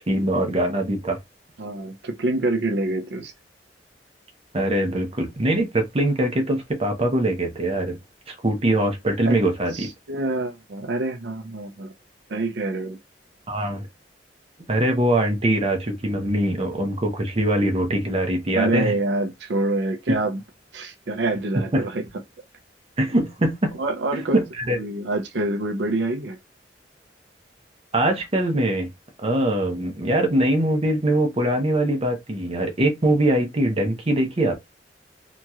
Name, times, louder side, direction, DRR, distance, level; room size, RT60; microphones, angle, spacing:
voice 1, 0.1-1.2 4.5-8.0 8.3-9.9 13.5-13.9 14.7-18.9 21.7-21.9 23.0-23.8 24.3-24.8 27.9-28.9 29.2-34.5, right 1 dB, 35° right, 0.7 m, -22 dB
voice 2, 1.6-3.3 9.2-9.4 9.7-11.9 12.3-13.0 18.5-20.4 20.7-22.0 23.8-24.4 24.8-26.4, right 2 dB, 75° right, 0.5 m, -26 dB
2.9 x 2.8 x 2.3 m
head